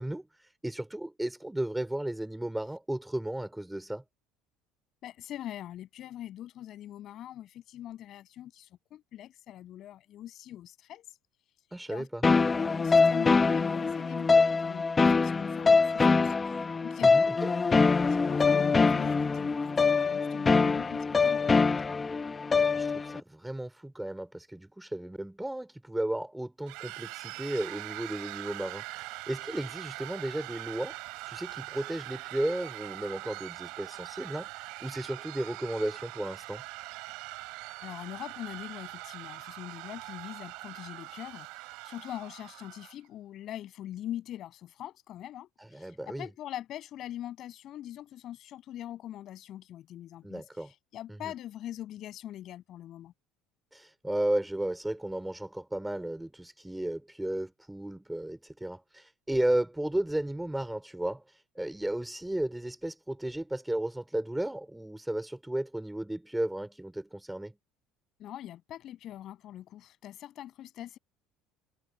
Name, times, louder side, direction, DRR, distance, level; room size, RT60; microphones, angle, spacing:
voice 1, 0.0-4.0 11.7-12.2 17.0-17.5 22.7-30.9 31.3-36.6 45.6-46.3 50.2-50.7 51.1-51.3 53.7-67.6, right 1 dB, 5° right, 4.8 m, -34 dB
voice 2, 5.0-11.2 11.9-12.1 12.7-16.3 16.8-17.3 18.1-21.7 37.8-53.1 68.2-71.0, left 12 dB, 40° left, 7.5 m, -43 dB
sound 1, 12.2-23.2, left 4 dB, 15° left, 1.1 m, -24 dB
sound 2, 26.7-43.0, right 24 dB, 70° right, 3.8 m, -42 dB
cardioid pair, 175°, 0 cm